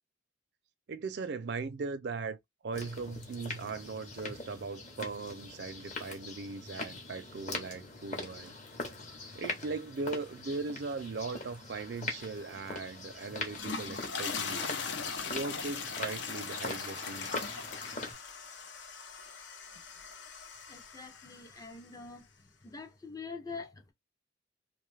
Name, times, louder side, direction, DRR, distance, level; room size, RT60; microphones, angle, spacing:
voice 1, 0.9-8.5 9.3-14.7 15.3-17.5, right 4 dB, 60° right, 0.4 m, -39 dB
sound 1, 2.7-18.1, left 3 dB, 40° left, 0.8 m, -42 dB
sound 2, 13.4-21.7, left 5 dB, 70° left, 0.6 m, -40 dB
voice 2, 20.7-22.2 22.6-23.9, left 4 dB, 20° left, 0.4 m, -45 dB
2.5 x 2.3 x 3.2 m
head